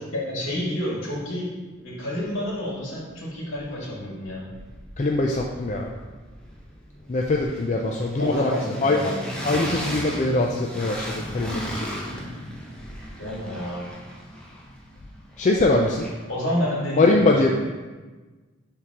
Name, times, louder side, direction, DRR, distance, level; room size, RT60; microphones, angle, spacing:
voice 1, 0.1-1.5 1.8-4.5 8.2-9.2 13.2-13.9 16.3-17.5, left 1 dB, 70° left, -5 dB, 2.0 m, -29 dB
sound 1, 2.5-2.6 2.8-4.0 4.2-16.4, equal, 5° left, 0.8 m, -36 dB
voice 2, 5.0-5.9 7.1-8.5 8.8-9.1 9.5-11.9 15.4-16.1 17.0-17.5, left 2 dB, 35° left, 0 dB, 0.4 m, -22 dB
11.0 x 3.7 x 2.9 m, 1.3 s
head